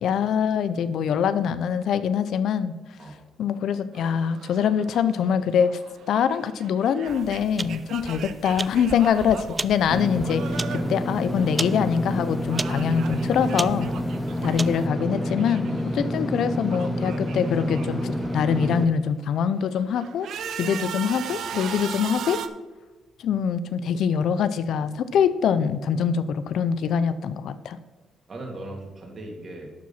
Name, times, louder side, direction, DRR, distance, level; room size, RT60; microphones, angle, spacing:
voice 1, 0.0-2.7 3.4-5.8 6.1-13.9 14.4-22.4 23.2-27.8, left 7 dB, 70° left, 13 dB, 0.5 m, -24 dB
sound 1, 3.9-12.0 12.2-16.0 16.3-18.9 19.4-22.5, right 8 dB, 70° right, 0.6 m, -39 dB
sound 2, 7.1-14.9, right 3 dB, 20° right, 0.3 m, -36 dB
Engine / Mechanisms, 9.9-18.8, equal, 5° left, 0.7 m, -28 dB
voice 2, 24.7-25.1 28.3-29.7, right 1 dB, 45° right, 1 dB, 2.7 m, -39 dB
11.5 x 4.8 x 5.6 m, 1.3 s
cardioid pair, 90°, 0 cm